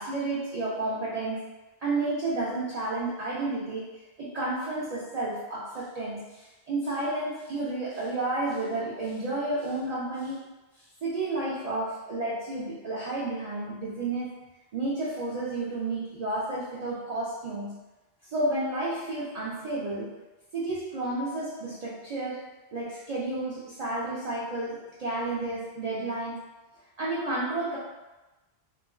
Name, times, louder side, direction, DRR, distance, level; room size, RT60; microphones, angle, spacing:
voice 1, 0.0-1.5 1.8-3.9 4.2-10.5 10.8-14.4 14.7-17.9 18.2-20.2 20.5-22.5 22.7-26.4 27.0-27.8, right 2 dB, 55° right, -6 dB, 0.5 m, -31 dB
3.0 x 2.4 x 2.3 m, 1.1 s
omnidirectional pair, 1.1 m